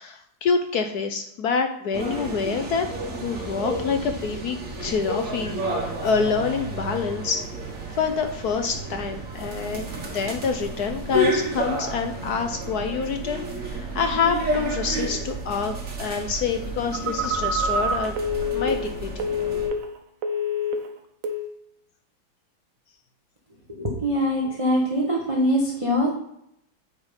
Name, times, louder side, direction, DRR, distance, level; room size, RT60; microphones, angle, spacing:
voice 1, 0.0-2.9 3.2-7.4 7.9-18.2 18.5-19.3, left 5 dB, 60° left, 6 dB, 1.1 m, -27 dB
sound 1, 1.9-19.7, right 1 dB, 45° right, 1.9 m, -31 dB
Telephone, 16.9-20.0 20.2-20.9 21.2-21.6, left 1 dB, 85° right, 1.8 m, -27 dB
voice 2, 23.8-26.1, equal, 20° right, -3 dB, 1.3 m, -23 dB
9.3 x 4.9 x 5.2 m, 0.76 s
omnidirectional pair, 2.1 m